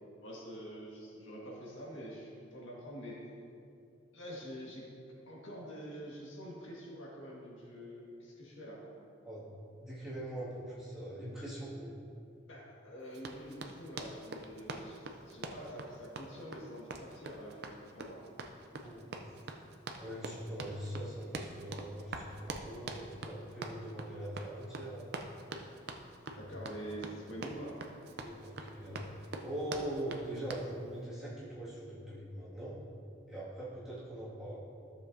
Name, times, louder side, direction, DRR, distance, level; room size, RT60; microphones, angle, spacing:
voice 1, 0.2-3.2 4.1-4.9 5.3-8.8 12.5-18.2 26.4-27.8, equal, 75° left, -4 dB, 1.8 m, -46 dB
voice 2, 9.8-11.9 18.8-19.6 20.0-25.1 26.3-26.5 27.1-27.4 28.2-32.8 33.3-34.6, right 1 dB, 5° right, -10 dB, 2.1 m, -42 dB
Run, 13.1-30.7, right 3 dB, 50° right, 0.5 m, -44 dB
13.0 x 6.9 x 2.7 m, 2.5 s
head